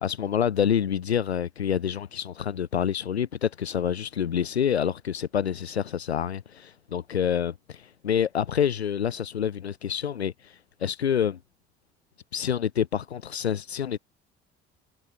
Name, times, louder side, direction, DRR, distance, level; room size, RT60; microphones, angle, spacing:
voice 1, 0.0-11.4 12.3-14.0, left 8 dB, 85° left, 0.9 m, -27 dB
figure-of-eight pair, 50°, 31 cm